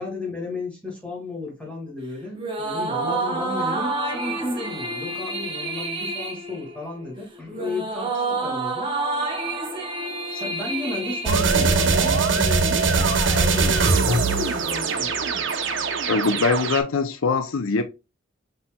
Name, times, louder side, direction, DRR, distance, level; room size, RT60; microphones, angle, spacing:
voice 1, 0.0-8.9 9.7-9.9 10.3-15.1, left 3 dB, 5° left, 1.9 m, -33 dB
sound 1, 2.3-12.1, right 3 dB, 25° right, 1.1 m, -29 dB
sound 2, 11.3-16.8, right 4 dB, 65° right, 0.8 m, -21 dB
voice 2, 16.1-17.8, left 4 dB, 90° left, 0.5 m, -22 dB
5.3 x 4.3 x 2.2 m
head